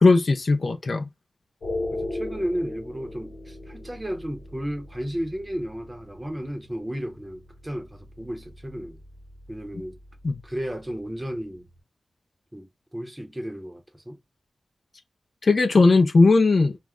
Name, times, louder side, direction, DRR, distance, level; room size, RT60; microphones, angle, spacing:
voice 1, 0.0-1.1 10.2-10.3 15.4-16.8, left 3 dB, 60° left, 0.4 m, -18 dB
sound 1, 1.6-11.8, left 2 dB, 85° left, 0.9 m, -39 dB
voice 2, 1.9-9.0 9.5-10.0 10.4-11.7 12.5-14.2, equal, 15° right, 0.6 m, -33 dB
2.3 x 2.0 x 3.5 m
wide cardioid pair, 65°, 0 cm